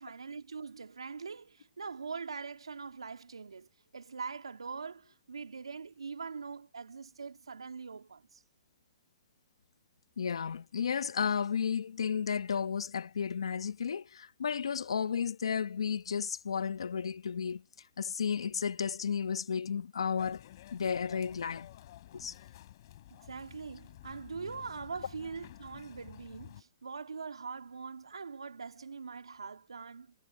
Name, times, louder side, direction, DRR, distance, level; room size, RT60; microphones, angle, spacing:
voice 1, 0.0-8.4 23.1-30.1, right 5 dB, 90° right, 2.4 m, -43 dB
voice 2, 10.2-17.6 18.0-20.4 20.7-21.7 22.1-22.3, left 7 dB, 80° left, 1.1 m, -33 dB
sound 1, 20.2-26.6, left 14 dB, 50° left, 5.7 m, -52 dB
hypercardioid pair, 135°, 3 cm